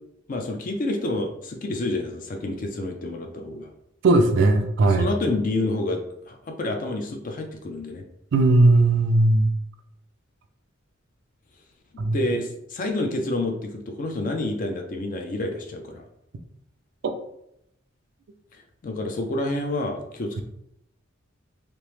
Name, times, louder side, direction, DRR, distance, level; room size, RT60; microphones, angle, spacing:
voice 1, 0.3-3.7 4.9-8.0 11.9-16.1 18.5-20.4, left 2 dB, 40° left, 4 dB, 0.4 m, -29 dB
voice 2, 4.0-5.1 8.3-9.5 12.0-12.2 17.0-17.1, right 2 dB, 60° right, 7 dB, 0.4 m, -18 dB
2.9 x 2.0 x 3.1 m, 0.77 s
head